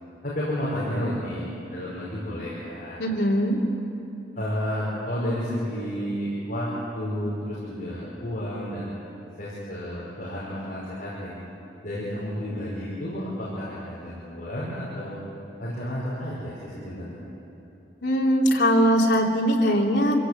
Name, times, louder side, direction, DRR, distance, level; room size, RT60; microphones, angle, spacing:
voice 1, 0.2-3.0 4.4-8.9 9.4-11.3 11.8-15.2 15.6-17.2, equal, 50° left, -8 dB, 5.4 m, -31 dB
voice 2, 3.0-3.6 18.0-20.2, equal, 80° left, -1 dB, 2.9 m, -21 dB
26.5 x 16.5 x 8.4 m, 3.0 s
head